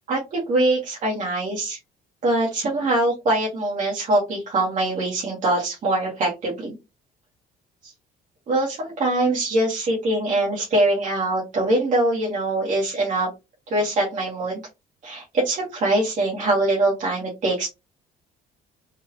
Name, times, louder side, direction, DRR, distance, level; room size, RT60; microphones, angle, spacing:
voice 1, 0.1-1.8 2.2-6.7 7.8-7.9 8.5-13.3 13.7-14.6 15.0-17.7, right 2 dB, 50° right, -4 dB, 1.6 m, -23 dB
4.4 x 2.4 x 3.0 m, 0.24 s
cardioid pair, 110°, 17 cm